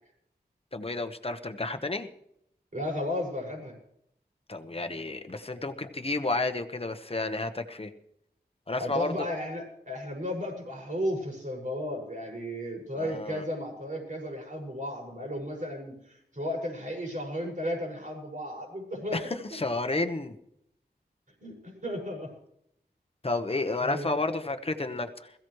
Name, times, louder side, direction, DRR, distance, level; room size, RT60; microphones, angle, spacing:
voice 1, 0.7-2.1 4.5-7.9 8.7-9.3 13.0-13.4 19.1-20.4 23.2-25.3, left 2 dB, 35° left, 8 dB, 1.2 m, -31 dB
voice 2, 2.7-3.8 8.8-19.4 21.4-22.3 23.8-24.2, left 1 dB, 50° right, -1 dB, 6.0 m, -34 dB
21.5 x 15.5 x 3.2 m, 0.75 s
wide cardioid pair, 80°, 17 cm